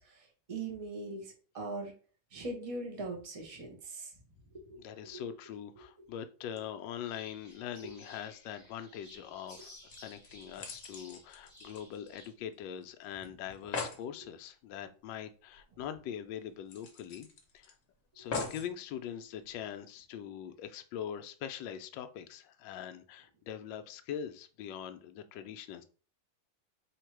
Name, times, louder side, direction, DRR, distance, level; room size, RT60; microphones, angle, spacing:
voice 1, 0.1-1.9 2.3-4.1 4.5-4.8 5.1-5.2, right 2 dB, 30° right, 1 dB, 0.6 m, -41 dB
voice 2, 4.8-17.3 17.5-17.7 18.1-25.8, left 9 dB, 75° left, 8 dB, 1.1 m, -42 dB
sound 1, 7.0-12.3, left 1 dB, 10° left, 1.2 m, -56 dB
sound 2, 9.9-12.5 12.8-12.9 13.2-13.3 13.5-14.0 15.5-15.6 16.0-16.1 16.7-17.7 18.3-18.7 19.4-19.5, left 4 dB, 50° left, 1.1 m, -41 dB
3.5 x 2.8 x 4.5 m, 0.39 s
omnidirectional pair, 2.2 m